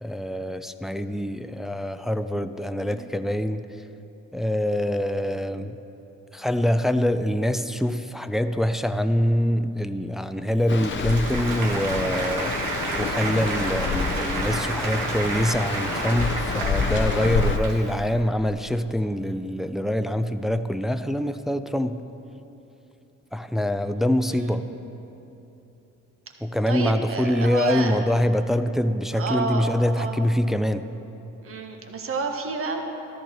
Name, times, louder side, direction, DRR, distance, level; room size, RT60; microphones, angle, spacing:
voice 1, 0.0-3.6 4.3-5.8 6.3-22.0 23.3-24.7 26.4-30.9, equal, ahead, 9 dB, 0.4 m, -25 dB
Applause, 10.6-18.1, right 3 dB, 85° right, 1.6 m, -31 dB
sound 1, 10.7-17.6, left 6 dB, 40° left, 0.7 m, -28 dB
voice 2, 24.3-24.7 26.7-28.0 29.1-30.2 31.4-32.8, right 4 dB, 45° right, 3 dB, 1.4 m, -30 dB
13.5 x 13.5 x 4.4 m, 3.0 s
cardioid pair, 90°, 30 cm